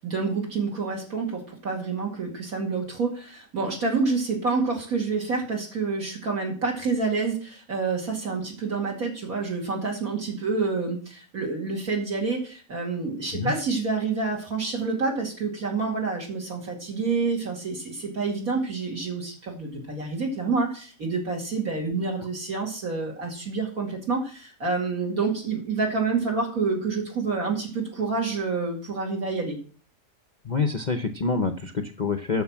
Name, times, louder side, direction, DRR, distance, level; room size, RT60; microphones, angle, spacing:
voice 1, 0.0-29.6, right 4 dB, 65° right, -1 dB, 2.7 m, -28 dB
voice 2, 30.4-32.4, left 4 dB, 45° left, 8 dB, 0.6 m, -26 dB
9.2 x 6.5 x 7.3 m, 0.40 s
omnidirectional pair, 1.7 m